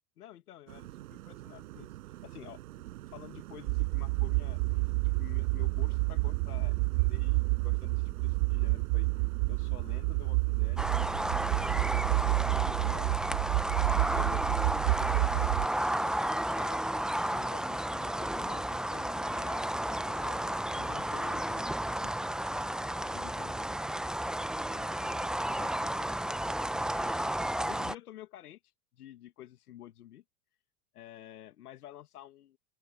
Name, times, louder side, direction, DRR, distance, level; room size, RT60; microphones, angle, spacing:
voice 1, 0.2-2.0 2.2-2.6 3.1-4.9 5.2-13.3 13.7-17.0 17.3-23.8 24.7-27.3 27.7-28.6 28.9-30.2 30.9-32.6, left 12 dB, 85° left, 2.2 m, -51 dB
sound 1, 0.7-13.0, right 16 dB, 75° right, 6.4 m, -47 dB
sound 2, 3.7-15.7, right 29 dB, 50° right, 0.8 m, -29 dB
sound 3, 10.8-28.0, right 1 dB, ahead, 0.7 m, -32 dB
open air
hypercardioid pair, 100°, 44 cm